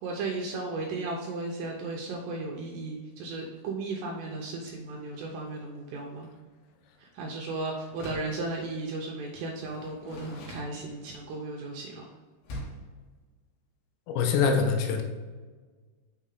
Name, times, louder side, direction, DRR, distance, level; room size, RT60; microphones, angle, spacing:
voice 1, 0.0-6.3 7.0-12.0, right 3 dB, 75° right, 0 dB, 2.6 m, -35 dB
Door, 7.9-8.4 9.6-11.3 12.4-12.9, left 1 dB, 65° left, 3.1 m, -42 dB
voice 2, 14.1-15.0, left 5 dB, 85° left, 4 dB, 3.6 m, -24 dB
7.0 x 6.4 x 3.8 m, 1.4 s
omnidirectional pair, 5.8 m